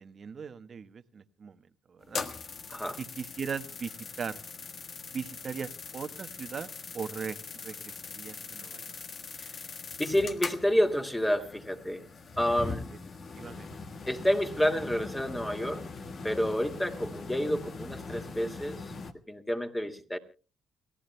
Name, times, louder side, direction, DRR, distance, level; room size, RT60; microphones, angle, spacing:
voice 1, 0.0-1.6 1.9-2.2 3.0-4.4 5.1-6.7 6.9-7.8 8.0-9.0 12.9-13.0 13.3-13.7, right 6 dB, 50° right, 10 dB, 1.1 m, -39 dB
sound 1, 2.0-19.1, left 4 dB, 50° left, 1.4 m, -41 dB
voice 2, 10.0-12.0 12.4-12.9 14.1-15.8 16.2-18.9 19.3-20.2, equal, 10° left, 6 dB, 2.1 m, -29 dB
29.5 x 15.5 x 2.2 m, 0.36 s
cardioid pair, 90°, 0 cm